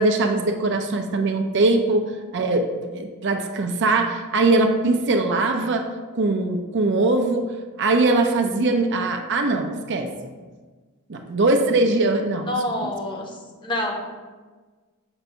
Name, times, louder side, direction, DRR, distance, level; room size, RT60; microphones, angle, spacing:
voice 1, 0.0-2.7 2.9-5.9 6.1-7.5 7.8-10.1 11.1-12.5 12.8-12.9, right 2 dB, 55° right, 5 dB, 0.5 m, -21 dB
voice 2, 12.5-14.1, left 1 dB, 20° left, 1 dB, 0.8 m, -28 dB
7.0 x 2.6 x 5.5 m, 1.3 s
head